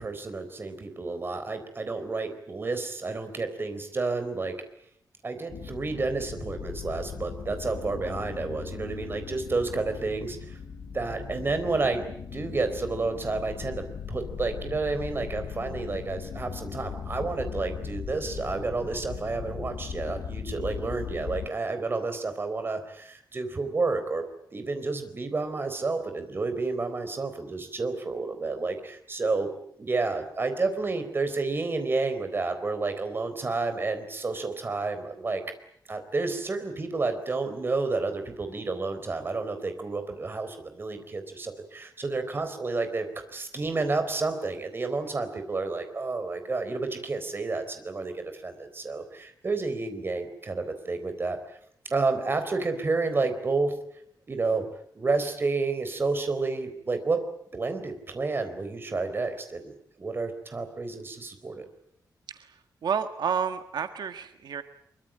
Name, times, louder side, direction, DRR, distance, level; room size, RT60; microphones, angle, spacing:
voice 1, 0.0-4.6 5.2-10.6 10.9-12.0 12.3-24.3 24.5-29.5 29.8-35.4 35.9-51.4 51.9-53.7 54.3-54.7 54.9-57.2 57.5-59.7 60.0-61.7, right 3 dB, 30° right, 8 dB, 4.0 m, -30 dB
sound 1, 5.5-21.5, left 6 dB, 85° left, 2.4 m, -38 dB
voice 2, 62.3-64.6, right 7 dB, 85° right, 8 dB, 1.6 m, -31 dB
24.5 x 23.5 x 8.7 m, 0.71 s
wide cardioid pair, 165°, 7 cm